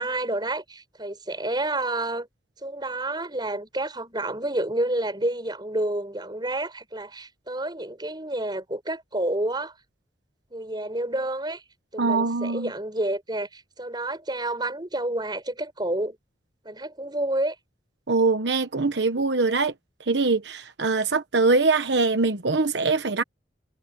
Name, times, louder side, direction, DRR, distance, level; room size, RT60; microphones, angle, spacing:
voice 1, 0.0-2.3 2.6-9.7 10.5-11.6 11.9-16.2 16.6-17.6, right 1 dB, 25° right, 5.6 m, -29 dB
voice 2, 12.0-12.7 18.1-19.7 20.1-23.2, right 3 dB, 80° right, 1.1 m, -23 dB
head